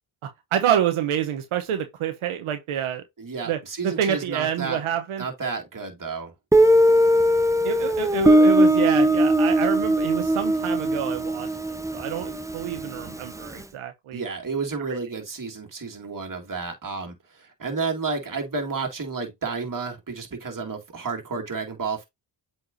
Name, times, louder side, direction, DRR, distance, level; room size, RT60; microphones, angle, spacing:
voice 1, 0.2-3.0 3.5-5.2 7.6-14.2, right 9 dB, 90° right, 1.0 m, -27 dB
voice 2, 3.2-4.8 5.2-6.3 14.1-22.0, right 4 dB, 40° right, 2.6 m, -31 dB
Guitar, 6.5-13.2, right 1 dB, 5° right, 0.9 m, -20 dB
7.9 x 4.5 x 2.7 m
cardioid pair, 60°, 48 cm